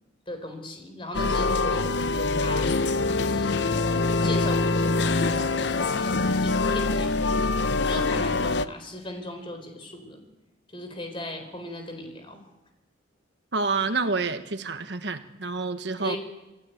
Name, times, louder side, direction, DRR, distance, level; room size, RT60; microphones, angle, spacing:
voice 1, 0.3-2.7 3.1-3.6 4.2-5.5 6.4-10.2 10.7-12.4 16.0-16.2, left 1 dB, 25° left, 6 dB, 4.3 m, -37 dB
sound 1, 1.1-8.7, left 3 dB, 65° left, 0.7 m, -24 dB
voice 2, 13.5-16.2, right 4 dB, 65° right, 8 dB, 1.3 m, -28 dB
27.0 x 16.0 x 9.3 m, 1.1 s
head